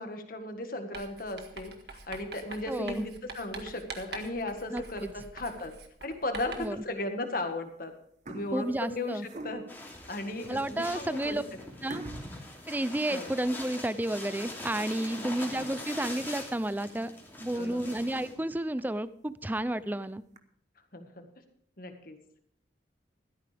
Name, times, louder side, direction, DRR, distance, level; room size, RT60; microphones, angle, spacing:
voice 1, 0.0-5.7 6.0-7.9 8.3-9.6 10.1-11.4 13.1-13.3 15.2-15.3 17.5-18.0 20.9-21.3 21.8-22.2, left 2 dB, 50° left, 6 dB, 1.6 m, -36 dB
Writing, 0.9-6.8, right 4 dB, 60° right, 1.7 m, -45 dB
voice 2, 2.7-3.0 4.7-5.1 6.6-6.8 8.5-9.3 10.5-11.4 11.8-12.0 12.7-17.1 17.4-20.2, right 1 dB, 10° right, 15 dB, 0.4 m, -31 dB
sound 1, 5.6-6.0 6.6-6.7 7.5-7.8 8.0-9.9 10.5-10.6 11.0-11.1 11.9-13.7 14.1-14.2 14.7-14.8 15.4-17.0 17.5-17.6 18.0-18.1 18.4-18.5 18.8-18.9 19.8-20.4, right 2 dB, 40° right, 1.0 m, -47 dB
sound 2, 9.7-18.3, left 1 dB, 10° left, 2.8 m, -43 dB
15.5 x 13.0 x 3.4 m, 0.64 s
head